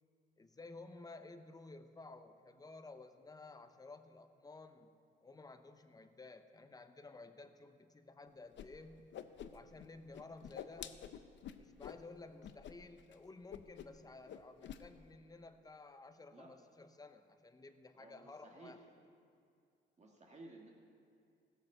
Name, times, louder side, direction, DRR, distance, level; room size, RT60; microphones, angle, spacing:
voice 1, 0.4-4.9 5.2-9.1 9.5-11.1 11.6-18.8, left 3 dB, 20° left, 9 dB, 0.8 m, -54 dB
Whoosh swoosh swish, 8.6-8.7 8.9-9.9 10.1-12.0 12.4-12.7 13.0-13.2 13.5-14.0 14.3-14.8, left 10 dB, 65° left, 0.6 m, -48 dB
voice 2, 17.9-18.7 20.0-20.7, right 2 dB, 35° right, -1 dB, 1.7 m, -56 dB
16.0 x 6.9 x 6.6 m, 2.4 s
cardioid pair, 90°, 20 cm